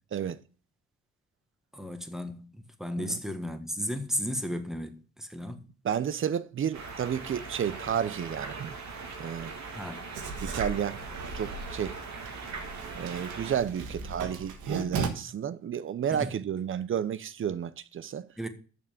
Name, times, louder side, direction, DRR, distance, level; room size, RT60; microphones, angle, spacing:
voice 1, 0.1-0.4 3.0-3.2 5.8-8.7 9.2-9.5 10.4-11.0 11.3-12.0 12.9-18.3, right 8 dB, 45° right, 0.7 m, -31 dB
voice 2, 1.7-5.6 9.6-10.0 16.1-16.3 18.4-18.5, equal, ahead, 1.3 m, -34 dB
sound 1, 6.7-13.6, right 4 dB, 65° right, 2.3 m, -40 dB
Writing, 10.1-15.1, right 4 dB, 85° right, 1.5 m, -37 dB
6.9 x 6.0 x 6.9 m
cardioid pair, 90°, 30 cm